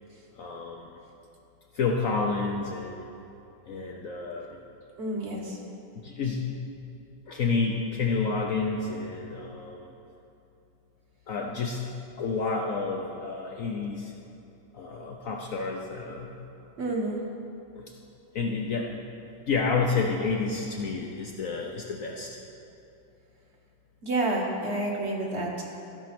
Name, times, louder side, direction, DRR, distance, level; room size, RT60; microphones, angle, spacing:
voice 1, 0.4-0.9 1.7-3.1 3.7-4.6 6.0-6.5 7.3-9.9 11.3-11.8 12.2-14.1 14.7-16.4 17.8-17.9 18.3-19.0 19.5-22.4, left 4 dB, 65° left, 1 dB, 0.8 m, -29 dB
voice 2, 5.0-5.6 16.8-17.2 24.0-25.6, right 2 dB, 40° right, 0 dB, 1.3 m, -29 dB
14.0 x 5.5 x 6.0 m, 2.8 s
omnidirectional pair, 2.1 m